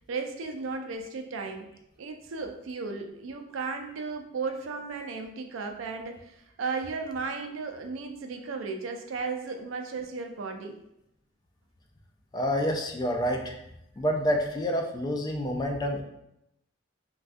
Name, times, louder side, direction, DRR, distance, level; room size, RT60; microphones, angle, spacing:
voice 1, 0.1-1.7 2.0-10.8, right 4 dB, 90° right, 5 dB, 0.4 m, -35 dB
voice 2, 12.3-13.6 14.0-16.0, equal, 20° left, 2 dB, 0.3 m, -28 dB
3.4 x 2.3 x 2.5 m, 0.81 s
head